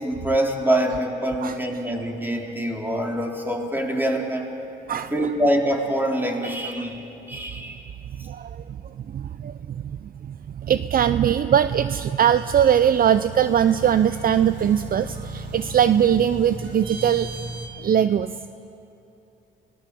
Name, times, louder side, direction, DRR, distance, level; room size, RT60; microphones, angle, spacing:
voice 1, 0.0-4.5 4.9-7.0 7.3-7.8, right 1 dB, 10° right, 0 dB, 4.0 m, -25 dB
voice 2, 4.9-5.3 6.8-6.9 8.2-17.3 17.8-18.3, right 9 dB, 45° right, 13 dB, 0.6 m, -21 dB
sound 1, 12.4-17.7, right 2 dB, 75° right, 3.9 m, -36 dB
28.5 x 18.5 x 7.7 m, 3.0 s
cardioid pair, 90°, 20 cm